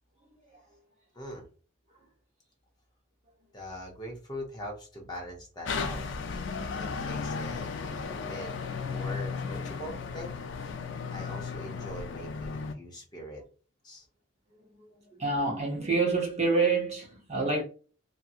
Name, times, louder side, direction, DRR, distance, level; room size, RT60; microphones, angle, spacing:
voice 1, 3.5-6.0 6.7-7.7 8.0-10.3 11.1-13.4 13.8-14.0, equal, 20° left, 0.6 m, -42 dB
sound 1, 5.6-12.7, left 5 dB, 60° left, 0.3 m, -35 dB
voice 2, 15.2-17.6, right 3 dB, 35° right, 0.7 m, -27 dB
2.7 x 2.6 x 2.3 m
head